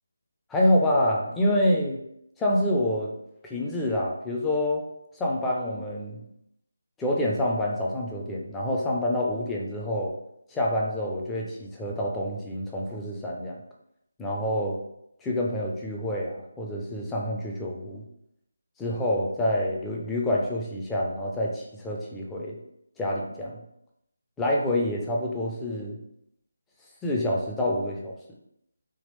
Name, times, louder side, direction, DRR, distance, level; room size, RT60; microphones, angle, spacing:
voice 1, 0.5-2.0 2.4-3.1 3.4-4.9 5.1-6.2 7.0-10.1 10.5-13.6 14.2-14.8 15.2-18.0 18.8-22.6 23.0-23.6 24.4-26.0 27.0-28.1, left 1 dB, 5° left, -2 dB, 0.5 m, -27 dB
3.4 x 2.4 x 3.1 m, 0.77 s
figure-of-eight pair, 160°, 0 cm